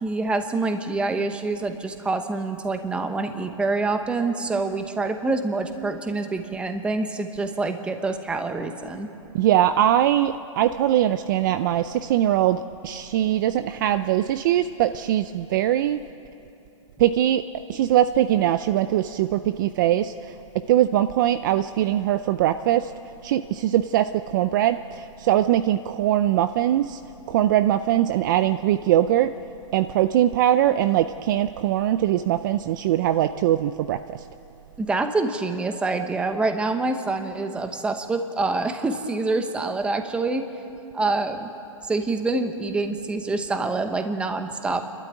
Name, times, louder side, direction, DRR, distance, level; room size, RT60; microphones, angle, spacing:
voice 1, 0.0-9.1 34.8-40.5 40.9-41.5 41.8-44.8, right 3 dB, 5° right, 7 dB, 1.0 m, -26 dB
voice 2, 9.3-16.0 17.0-17.4 17.7-20.4 20.7-22.9 23.2-27.0 27.3-29.3 29.7-34.2, right 12 dB, 35° right, 11 dB, 0.5 m, -21 dB
28.5 x 12.5 x 9.1 m, 2.9 s
hypercardioid pair, 160°, 17 cm